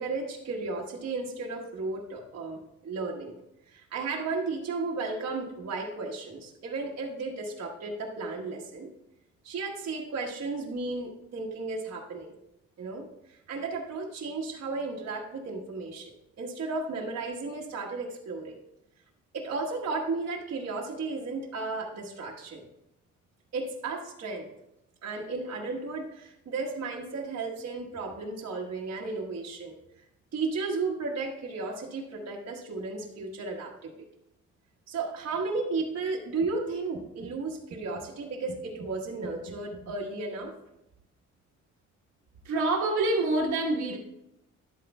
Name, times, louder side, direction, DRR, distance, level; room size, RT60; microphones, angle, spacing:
voice 1, 0.0-3.4 3.7-8.9 9.4-12.3 12.8-16.1 16.4-18.6 19.3-22.6 23.5-24.5 25.0-29.8 30.3-33.9 34.9-40.5, right 3 dB, 55° right, -2 dB, 1.4 m, -34 dB
voice 2, 42.4-44.0, right 2 dB, 75° right, -5 dB, 1.3 m, -26 dB
11.5 x 8.4 x 2.3 m, 0.85 s
cardioid pair, 90°, 30 cm